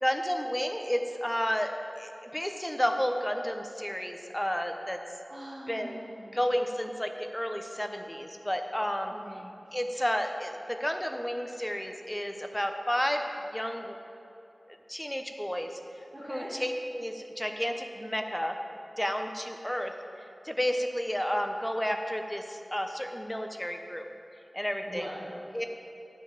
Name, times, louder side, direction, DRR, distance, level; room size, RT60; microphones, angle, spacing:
voice 1, 0.0-5.0 5.7-6.0 6.3-9.1 9.7-13.2 13.5-13.9 14.9-15.7 16.3-18.6 19.0-19.9 20.4-24.0 24.5-25.1 25.5-25.7, equal, 10° left, 5 dB, 0.9 m, -31 dB
voice 2, 5.3-6.4 9.1-9.6 16.1-16.5 24.8-25.3, equal, 45° right, -9 dB, 2.0 m, -42 dB
10.5 x 5.4 x 8.6 m, 2.8 s
wide cardioid pair, 65°, 0 cm